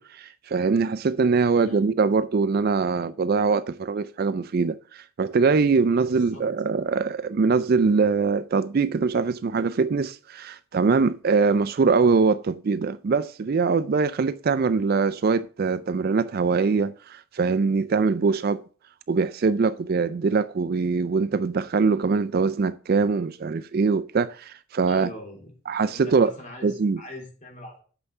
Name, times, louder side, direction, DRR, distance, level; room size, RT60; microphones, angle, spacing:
voice 1, 0.0-18.6 19.1-25.1 25.7-26.3 26.6-27.0, right 4 dB, 45° right, 0.3 m, -23 dB
voice 2, 1.5-1.8 6.0-6.4 24.9-25.5 25.9-27.8, left 1 dB, 35° left, 3.3 m, -42 dB
7.9 x 5.9 x 6.6 m
head